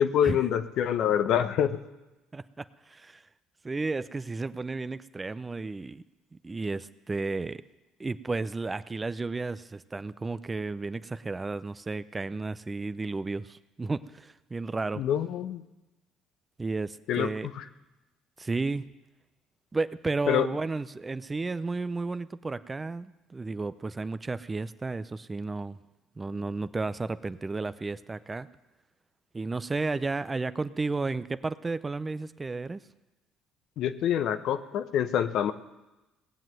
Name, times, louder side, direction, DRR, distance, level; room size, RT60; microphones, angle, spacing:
voice 1, 0.0-1.8 15.0-15.6 17.1-17.3 20.3-20.5 33.8-35.5, left 9 dB, 65° left, 11 dB, 0.8 m, -26 dB
voice 2, 2.3-3.2 3.6-6.0 6.4-7.6 8.0-15.0 16.6-17.5 18.4-18.8 19.7-25.8 26.2-28.5 29.3-32.8, right 3 dB, 25° right, 14 dB, 0.6 m, -33 dB
18.5 x 7.5 x 7.8 m, 1.0 s
supercardioid pair, 70°, 0 cm